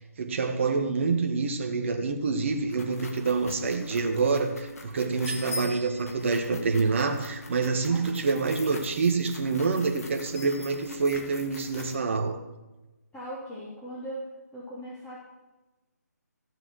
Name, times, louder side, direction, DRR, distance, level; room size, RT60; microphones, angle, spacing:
voice 1, 0.2-12.4, right 4 dB, 45° right, 1.5 m, -27 dB
sound 1, 2.4-12.0, left 2 dB, 55° left, 2.2 m, -43 dB
voice 2, 13.1-14.2 14.5-15.2, right 1 dB, 10° left, 3.0 m, -39 dB
15.0 x 7.6 x 6.3 m
figure-of-eight pair, 150°, 9 cm